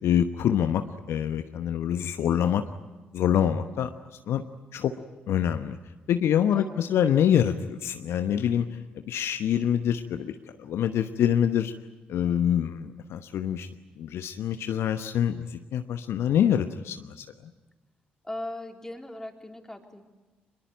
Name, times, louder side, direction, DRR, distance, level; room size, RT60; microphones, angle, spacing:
voice 1, 0.0-2.6 3.1-3.9 4.3-4.4 4.7-4.9 5.3-5.8 6.1-8.7 9.1-11.7 12.1-13.7 14.0-17.2, left 9 dB, 60° left, 9 dB, 1.0 m, -25 dB
voice 2, 18.2-20.1, left 1 dB, 10° left, 3 dB, 3.9 m, -38 dB
24.5 x 22.0 x 9.1 m, 1.2 s
figure-of-eight pair, 45°, 5 cm